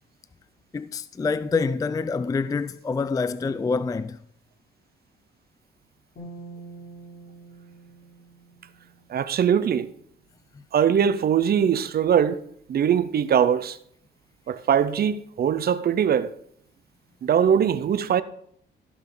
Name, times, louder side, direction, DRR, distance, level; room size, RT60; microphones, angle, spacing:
voice 1, 0.7-4.2, left 4 dB, 20° left, 0.4 m, -26 dB
sound 1, 6.2-9.5, right 3 dB, 55° left, 3.6 m, -45 dB
voice 2, 9.1-9.9 10.7-12.4 12.7-13.8 14.5-16.3 17.2-18.2, right 8 dB, 50° right, 0.6 m, -21 dB
16.0 x 5.6 x 3.8 m
cardioid pair, 90°, 20 cm